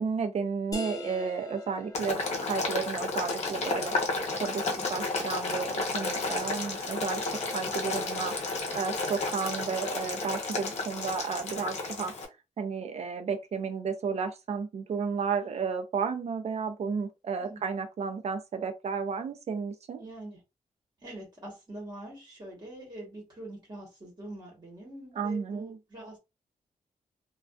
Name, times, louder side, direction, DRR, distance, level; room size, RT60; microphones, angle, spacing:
voice 1, 0.0-4.0 4.4-12.1 12.6-20.0 25.1-25.8, right 5 dB, 55° right, 0.5 m, -33 dB
sound 1, 0.7-6.1, left 3 dB, 25° left, 0.5 m, -46 dB
Boiling, 1.9-12.3, left 3 dB, 60° left, 0.7 m, -32 dB
voice 2, 20.0-20.4 21.0-26.2, right 1 dB, 35° right, 1.2 m, -44 dB
2.5 x 2.3 x 2.3 m
wide cardioid pair, 125°, 13 cm